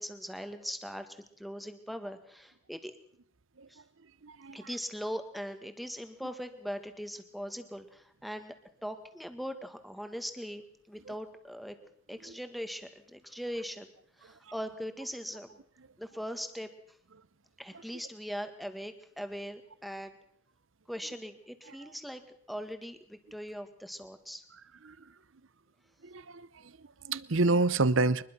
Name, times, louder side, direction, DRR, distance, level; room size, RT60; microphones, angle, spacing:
voice 1, 0.0-2.9 3.7-3.8 4.5-8.6 8.8-11.8 12.1-13.9 14.2-15.6 16.0-16.7 17.6-20.2 20.9-22.2 22.5-24.4, equal, ahead, 1.8 m, -40 dB
voice 2, 4.2-4.6 11.1-11.2 24.8-25.0 26.0-28.2, right 3 dB, 65° right, 0.8 m, -29 dB
24.0 x 21.0 x 6.0 m
head